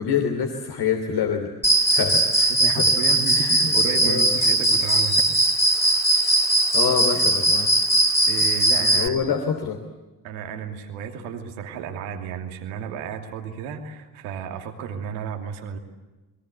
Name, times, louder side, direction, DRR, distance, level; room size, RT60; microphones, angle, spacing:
voice 1, 0.0-1.5 1.9-2.8 3.3-3.7 4.0-4.4 5.8-6.0 6.7-7.7 8.9-9.8, left 7 dB, 55° left, 4 dB, 3.1 m, -26 dB
Cricket, 1.6-9.1, right 1 dB, 5° left, 3.8 m, -20 dB
voice 2, 2.6-5.3 7.1-7.2 8.3-9.2 10.2-15.8, right 7 dB, 70° right, 5 dB, 2.9 m, -33 dB
28.0 x 22.5 x 8.2 m, 1.2 s
figure-of-eight pair, 40°, 47 cm